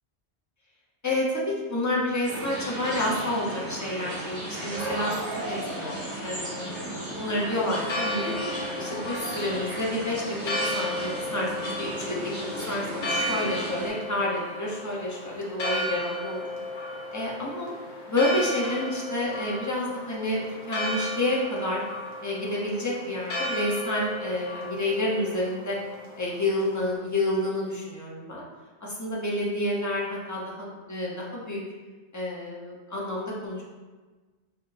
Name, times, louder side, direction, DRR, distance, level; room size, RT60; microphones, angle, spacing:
voice 1, 1.0-5.9 6.2-8.3 8.7-10.2 10.6-11.9 12.7-16.5 17.1-17.7 18.1-21.8 22.2-25.8 26.2-28.4 28.8-31.6 32.1-33.6, left 1 dB, 20° left, -5 dB, 0.5 m, -29 dB
sound 1, 2.2-13.9, right 1 dB, 40° right, 1.6 m, -34 dB
Church bell, 7.5-26.9, left 1 dB, 75° left, 1.0 m, -34 dB
4.2 x 2.8 x 2.6 m, 1.3 s
omnidirectional pair, 1.1 m